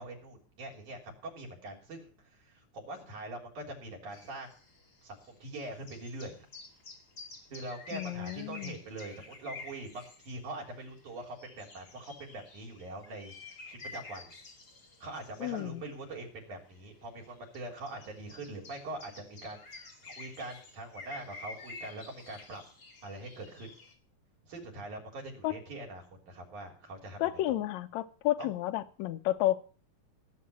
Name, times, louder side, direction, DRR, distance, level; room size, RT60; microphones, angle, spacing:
voice 1, 0.0-4.5 5.0-6.4 7.5-14.3 15.0-22.6 23.0-23.7 24.5-27.6 28.4-28.5, right 2 dB, 80° right, 1 dB, 4.9 m, -43 dB
sound 1, 4.1-23.9, left 3 dB, 35° left, 3.0 m, -50 dB
voice 2, 7.9-8.8 15.4-15.8 25.4-25.5 27.2-29.6, left 14 dB, 75° left, 8 dB, 2.1 m, -31 dB
16.5 x 7.4 x 8.3 m, 0.39 s
omnidirectional pair, 3.4 m